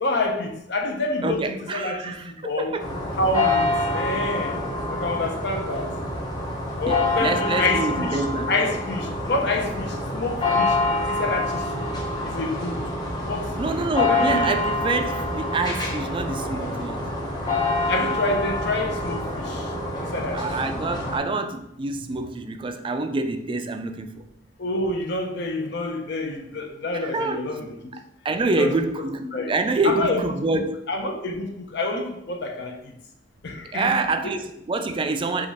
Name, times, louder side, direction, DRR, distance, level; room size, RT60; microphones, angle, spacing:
voice 1, 0.0-2.8 3.1-4.5 4.9-5.9 6.8-10.8 11.1-11.9 12.2-12.8 13.3-13.5 14.1-14.5 17.8-19.7 20.0-20.5 21.3-21.4 24.6-27.9 28.5-28.7 29.2-29.5 29.8-30.3 30.9-32.9 33.4-34.0, left 2 dB, 65° left, 2 dB, 0.8 m, -28 dB
voice 2, 1.2-2.9 6.9-8.5 13.6-17.0 19.9-24.2 26.9-27.5 28.2-30.8 33.7-35.5, right 3 dB, 30° right, 8 dB, 0.3 m, -26 dB
sound 1, 2.8-21.2, left 2 dB, 20° left, 0.9 m, -26 dB
5.1 x 2.4 x 4.0 m, 0.80 s
head